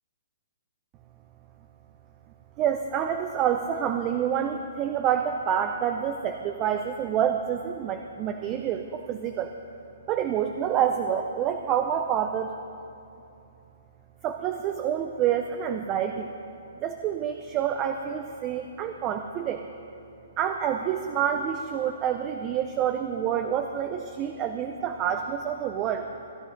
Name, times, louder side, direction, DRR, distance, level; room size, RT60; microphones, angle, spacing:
voice 1, 2.6-9.5 10.1-12.5 14.2-16.3 16.8-19.6 20.4-26.1, right 9 dB, 25° right, 6 dB, 0.5 m, -27 dB
15.5 x 9.7 x 5.2 m, 2.7 s
hypercardioid pair, 150°, 0 cm